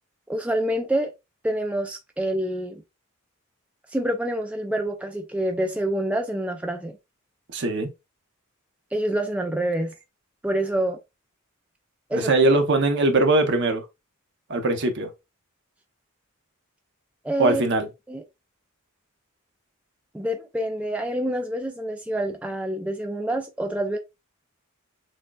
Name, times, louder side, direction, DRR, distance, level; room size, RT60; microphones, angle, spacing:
voice 1, 0.3-1.1 1.4-2.8 3.9-7.0 8.9-9.9 10.4-11.0 12.1-12.3 17.2-17.6 18.1-18.2 20.1-24.0, right 1 dB, 5° right, 0.3 m, -27 dB
voice 2, 7.5-7.9 12.1-13.8 14.5-15.1 17.4-17.9, right 2 dB, 55° right, 0.8 m, -21 dB
6.2 x 2.2 x 2.3 m
head